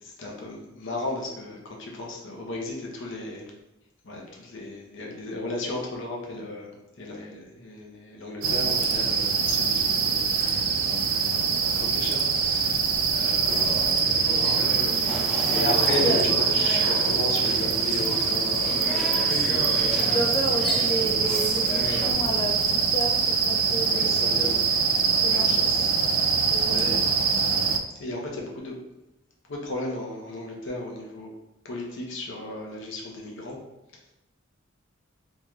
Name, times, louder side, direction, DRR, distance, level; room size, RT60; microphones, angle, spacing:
voice 1, 0.0-3.5 4.0-13.7 14.1-14.3 15.5-19.0 23.9-24.7 25.2-27.0 27.6-28.7 29.5-31.3 31.6-33.6, left 2 dB, 65° left, -1 dB, 0.8 m, -35 dB
sound 1, 8.4-27.8, right 5 dB, 80° right, 0.4 m, -24 dB
sound 2, 13.5-22.1, equal, 5° left, 0.7 m, -33 dB
voice 2, 19.8-24.1 24.4-24.9 25.2-25.8 26.5-27.0, right 1 dB, 20° left, 0 dB, 0.3 m, -32 dB
4.0 x 3.1 x 2.3 m, 0.94 s
head